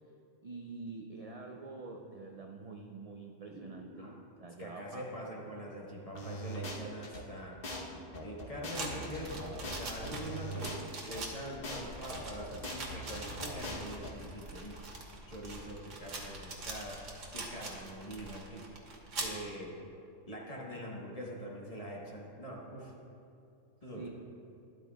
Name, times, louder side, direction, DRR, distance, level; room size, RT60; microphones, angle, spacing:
voice 1, 0.4-5.3 10.0-10.4 23.8-24.1, right 3 dB, 50° right, 1 dB, 0.4 m, -47 dB
sound 1, 3.1-3.2 3.5-4.5 5.1-5.8 6.1-6.2 6.7-6.8 7.0-8.9 9.4-9.5, right 1 dB, 25° right, 1.4 m, -54 dB
voice 2, 4.6-7.6 8.2-10.7 11.0-14.8 15.3-17.0 17.3-18.6 19.2-19.8 20.3-22.9 23.8-24.1, equal, 30° left, -3 dB, 1.4 m, -43 dB
sound 2, 6.1-7.2 7.6-7.8 8.1-11.2 11.6-11.8 12.1-14.1, equal, 50° left, 1.2 m, -41 dB
sound 3, 8.7-19.4, right 3 dB, 75° right, 1.5 m, -43 dB
12.0 x 10.5 x 2.3 m, 2.5 s
omnidirectional pair, 1.3 m